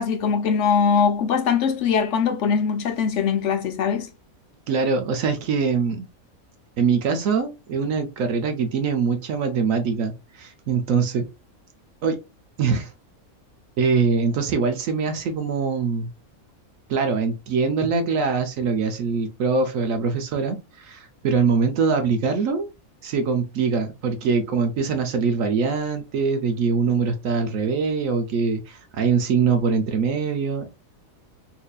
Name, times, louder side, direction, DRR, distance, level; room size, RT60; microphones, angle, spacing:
voice 1, 0.0-4.1, left 6 dB, 65° left, 0.9 m, -21 dB
voice 2, 4.7-6.1 6.8-11.3 12.0-12.2 12.6-12.9 13.8-16.1 16.9-22.7 23.0-30.7, right 5 dB, 70° right, 1.0 m, -23 dB
4.3 x 2.7 x 2.3 m
omnidirectional pair, 1.5 m